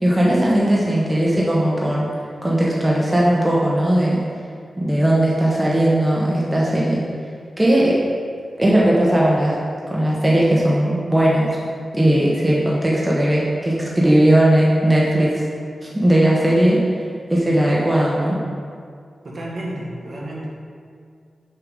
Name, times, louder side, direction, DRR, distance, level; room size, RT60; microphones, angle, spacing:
voice 1, 0.0-2.1 2.4-4.2 4.8-7.0 7.6-8.0 8.6-9.6 9.9-11.5 11.9-15.4 15.8-16.8 17.3-18.4, right 1 dB, 15° right, -5 dB, 1.1 m, -17 dB
voice 2, 19.2-20.5, right 1 dB, 55° right, -4 dB, 1.6 m, -31 dB
6.9 x 6.7 x 3.7 m, 2.2 s
wide cardioid pair, 105°, 0 cm